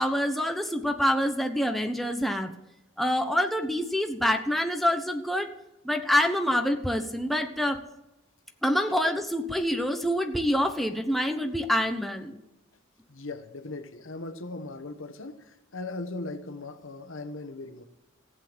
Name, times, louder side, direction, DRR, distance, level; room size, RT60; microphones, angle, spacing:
voice 1, 0.0-2.5 3.0-5.5 5.8-7.8 8.6-12.4, equal, ahead, 0.9 m, -26 dB
voice 2, 13.1-17.9, left 2 dB, 85° left, 1.2 m, -38 dB
15.0 x 8.0 x 7.6 m
head